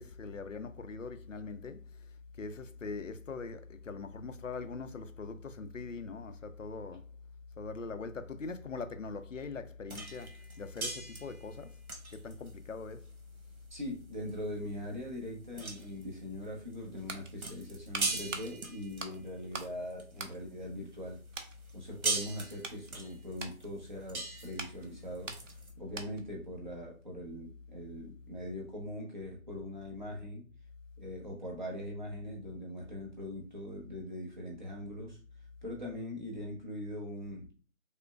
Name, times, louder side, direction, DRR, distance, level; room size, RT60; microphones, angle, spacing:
voice 1, 0.0-1.8 2.4-7.0 7.6-11.7 12.1-13.0, left 4 dB, 65° left, 0.6 m, -42 dB
sound 1, 9.9-20.5 20.9-25.7, right 3 dB, 85° right, 1.2 m, -40 dB
voice 2, 13.7-21.2 21.7-25.3 25.8-30.5 31.0-35.2 35.6-37.5, left 1 dB, 35° right, 0.9 m, -41 dB
sound 2, 16.7-19.8 20.1-21.0 21.3-21.6 22.1-26.4 26.7-26.8, right 3 dB, 60° right, 0.7 m, -45 dB
5.1 x 2.1 x 2.3 m
figure-of-eight pair, 170°, 42 cm